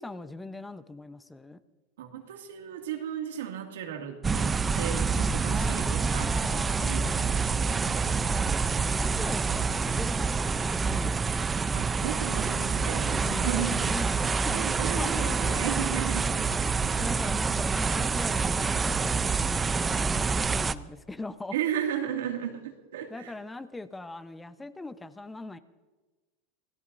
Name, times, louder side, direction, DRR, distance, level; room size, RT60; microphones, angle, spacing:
voice 1, 0.0-1.6 5.5-7.0 8.2-11.6 13.1-21.6 23.1-25.6, left 2 dB, 10° left, 10 dB, 0.9 m, -40 dB
voice 2, 2.0-8.1 11.7-13.9 14.5-16.4 16.7-17.3 21.5-23.3, right 10 dB, 85° right, 3 dB, 2.3 m, -35 dB
sound 1, 4.2-20.7, right 5 dB, 20° right, 0.6 m, -27 dB
27.0 x 17.5 x 2.7 m, 1.3 s
supercardioid pair, 110°, 0 cm